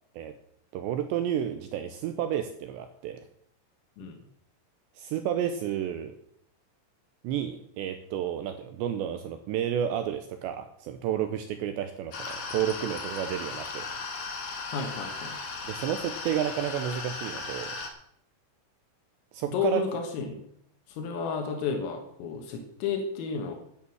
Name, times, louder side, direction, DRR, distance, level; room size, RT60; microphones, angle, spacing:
voice 1, 0.7-3.2 5.0-6.2 7.2-14.0 15.6-17.8 19.3-19.8, right 10 dB, 85° right, 8 dB, 2.6 m, -31 dB
sound 1, 12.1-17.9, left 4 dB, 50° left, 2.5 m, -36 dB
voice 2, 14.7-15.4 19.5-20.4 20.9-23.6, left 5 dB, 85° left, 3 dB, 4.3 m, -32 dB
11.0 x 9.6 x 7.8 m, 0.70 s
omnidirectional pair, 5.9 m